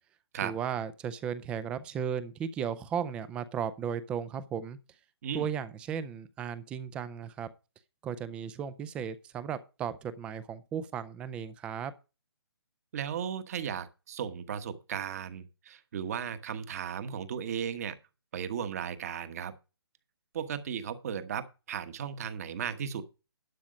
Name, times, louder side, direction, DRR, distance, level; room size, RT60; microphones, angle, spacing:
voice 1, 0.4-4.8 5.3-7.5 8.0-11.9, right 8 dB, 10° right, 0.4 m, -35 dB
voice 2, 12.9-18.0 18.3-19.5 20.3-23.0, right 8 dB, 35° right, 1.2 m, -36 dB
12.0 x 6.2 x 5.0 m
hypercardioid pair, 160°, 13 cm